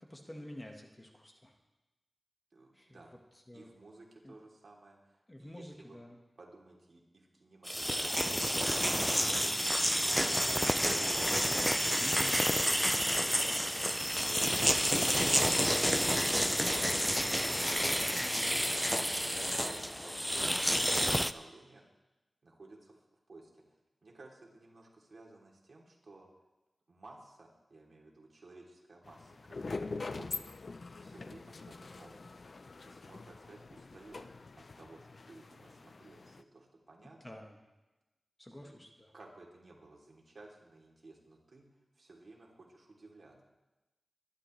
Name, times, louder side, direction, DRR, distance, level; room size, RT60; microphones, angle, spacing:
voice 1, 0.1-1.6 2.7-3.0 3.5-3.7 4.2-4.3 5.3-6.2 12.0-12.3 16.8-17.4 18.2-18.5 37.2-37.6 38.4-39.1, left 1 dB, 20° left, 2 dB, 1.5 m, -49 dB
voice 2, 2.5-3.1 3.5-6.0 6.4-8.4 8.9-11.0 11.6-15.2 15.6-17.1 18.2-21.9 22.4-26.3 26.9-30.4 31.0-32.3 32.8-34.3 34.6-37.4 38.5-38.7 39.1-43.4, right 2 dB, 60° right, -2 dB, 3.0 m, -56 dB
sound 1, 7.7-21.3, equal, ahead, 0.4 m, -29 dB
sound 2, 29.1-36.4, left 3 dB, 60° left, 0.5 m, -44 dB
23.5 x 11.0 x 3.2 m, 1.0 s
wide cardioid pair, 75°, 0 cm